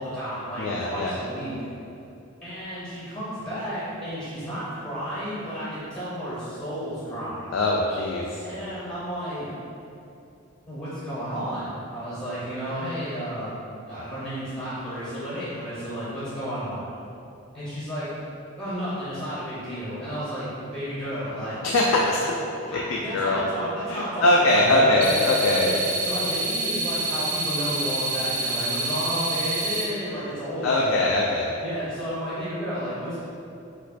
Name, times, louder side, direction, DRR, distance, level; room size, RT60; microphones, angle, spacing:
voice 1, 0.0-1.5 2.4-7.4 8.4-9.5 10.7-13.5 13.9-16.9 17.5-18.1 18.6-21.6 21.9-22.0 22.7-25.3 25.6-30.9 31.6-33.2, equal, 20° left, -11 dB, 0.6 m, -32 dB
voice 2, 0.6-1.2 7.5-8.4 21.6-22.2 22.7-23.4 23.9-25.7 30.6-31.5, left 2 dB, 65° left, -3 dB, 0.3 m, -22 dB
sound 1, 25.0-29.8, right 2 dB, 35° right, 0.4 m, -27 dB
4.3 x 2.2 x 2.5 m, 2.7 s
head